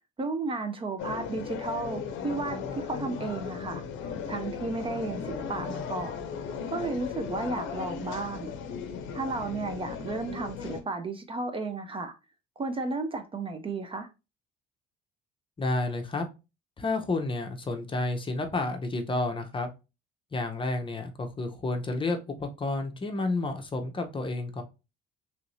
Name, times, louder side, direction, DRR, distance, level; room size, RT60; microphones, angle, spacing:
voice 1, 0.2-3.8 4.3-6.2 6.7-8.5 9.1-12.1 12.6-14.1, right 3 dB, 25° right, 0.5 m, -33 dB
sound 1, 1.0-10.8, left 6 dB, 65° left, 0.6 m, -36 dB
voice 2, 15.6-16.3 16.8-19.7 20.3-24.6, left 2 dB, 25° left, 0.6 m, -30 dB
3.0 x 2.6 x 3.0 m
supercardioid pair, 85°, 21 cm